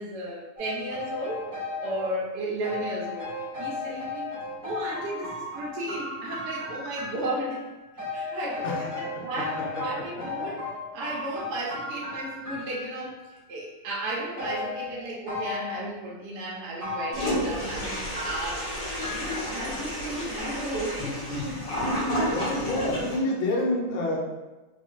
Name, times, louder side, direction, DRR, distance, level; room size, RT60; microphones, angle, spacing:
voice 1, 0.0-1.5 1.8-4.3 4.6-7.6 8.1-10.6 10.9-18.7 19.1-21.6 22.0-22.1 22.5-23.0, right 1 dB, 70° right, -4 dB, 1.1 m, -34 dB
sound 1, 0.6-2.1 2.6-7.6 8.0-13.1 14.4-15.8 16.8-17.3 18.1-19.8 20.4-20.5, left 3 dB, 30° right, 0.3 m, -35 dB
voice 2, 9.6-10.2 22.3-24.2, left 1 dB, 80° left, -3 dB, 0.6 m, -28 dB
Toilet flush, 17.1-23.2, equal, 60° left, 1.5 m, -31 dB
3.6 x 2.1 x 2.4 m, 1.1 s
omnidirectional pair, 2.1 m